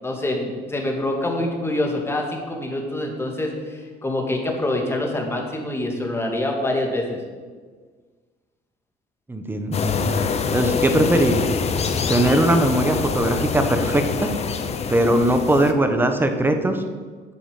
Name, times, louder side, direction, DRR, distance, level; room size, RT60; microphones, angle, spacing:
voice 1, 0.0-7.2, left 1 dB, 15° left, 1 dB, 2.2 m, -25 dB
voice 2, 9.3-10.0 10.5-11.5 12.1-14.3 14.9-16.8, right 1 dB, 10° right, 6 dB, 1.2 m, -20 dB
sound 1, 9.7-15.7, left 5 dB, 40° left, 0.9 m, -25 dB
9.4 x 7.1 x 7.5 m, 1.5 s
cardioid pair, 110°, 17 cm